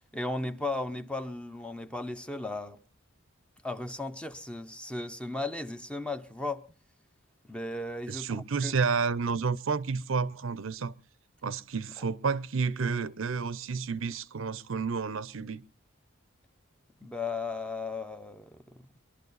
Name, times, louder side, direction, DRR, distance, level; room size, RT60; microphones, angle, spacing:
voice 1, 0.1-2.8 3.6-6.6 7.5-8.3 8.6-8.7 17.0-18.9, left 2 dB, 5° left, 0.7 m, -35 dB
voice 2, 8.1-10.9 11.4-15.6, right 5 dB, 70° right, 0.6 m, -30 dB
23.0 x 11.5 x 4.0 m
head